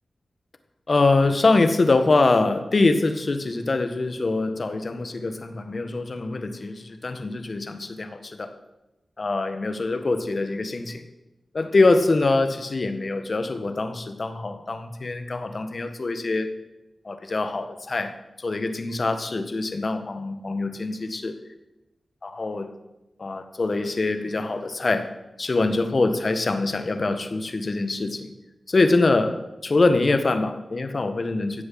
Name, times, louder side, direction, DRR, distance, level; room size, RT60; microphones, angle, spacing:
voice 1, 0.9-8.5 9.2-11.0 11.5-16.5 17.0-18.1 18.4-21.3 22.2-22.7 23.2-25.1 25.4-28.3 28.7-31.6, left 3 dB, 55° left, 9 dB, 1.6 m, -24 dB
16.0 x 7.9 x 7.8 m, 0.96 s
cardioid pair, 45°, 0 cm